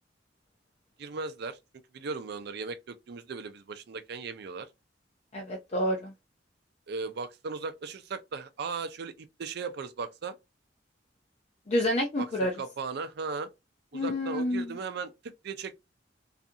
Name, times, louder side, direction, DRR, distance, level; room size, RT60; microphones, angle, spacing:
voice 1, 1.0-1.6 1.9-4.7 6.9-10.4 12.2-13.5 13.9-15.7, right 4 dB, 60° right, 0.4 m, -37 dB
voice 2, 5.3-6.1 11.7-12.5 13.9-14.8, left 1 dB, 35° left, 0.5 m, -28 dB
2.7 x 2.4 x 2.2 m
head